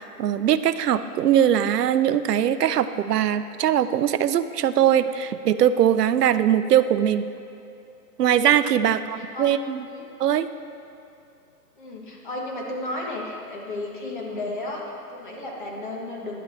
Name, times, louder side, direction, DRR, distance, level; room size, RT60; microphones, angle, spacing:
voice 1, 0.0-7.2 8.2-9.8 10.2-10.5, right 10 dB, 75° right, 12 dB, 0.6 m, -21 dB
voice 2, 8.8-9.5 9.8-10.1 11.8-16.4, left 2 dB, 30° left, -1 dB, 1.3 m, -34 dB
12.5 x 10.5 x 3.3 m, 2.6 s
hypercardioid pair, 175°, 48 cm